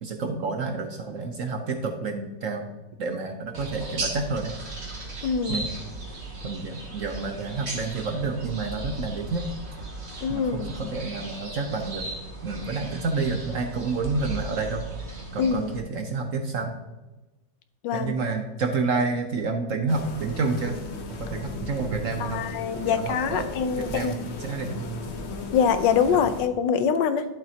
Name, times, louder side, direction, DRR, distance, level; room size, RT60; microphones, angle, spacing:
voice 1, 0.0-2.7 3.0-4.5 5.5-5.7 6.4-9.5 10.3-12.1 12.4-14.8 15.3-16.8 17.9-20.8 21.2-22.4 22.8-23.5 23.8-25.1 26.1-26.3, right 4 dB, 60° right, 5 dB, 0.8 m, -29 dB
sound 1, 3.5-15.8, right 2 dB, 35° right, 1.7 m, -36 dB
voice 2, 5.2-5.6 10.2-10.9 15.4-15.7 17.8-18.1 22.2-24.1 25.5-27.3, left 7 dB, 70° left, 10 dB, 1.3 m, -24 dB
sound 2, 19.9-26.5, left 3 dB, 50° left, 0.8 m, -37 dB
11.5 x 7.5 x 2.8 m, 1.1 s
omnidirectional pair, 2.1 m